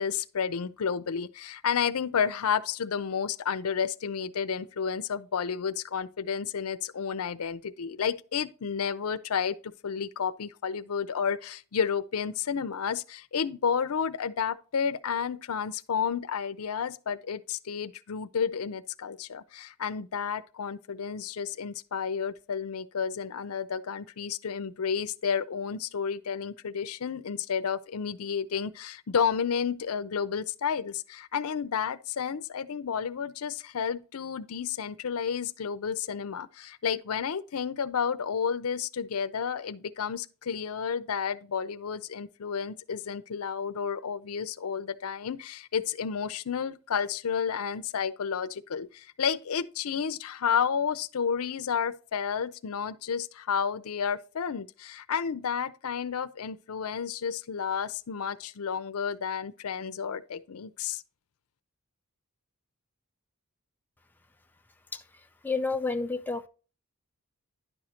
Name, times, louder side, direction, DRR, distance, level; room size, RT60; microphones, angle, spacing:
voice 1, 0.0-61.0, left 7 dB, 85° left, 0.5 m, -31 dB
voice 2, 65.4-66.5, left 3 dB, 10° left, 0.4 m, -30 dB
10.0 x 6.3 x 2.9 m
head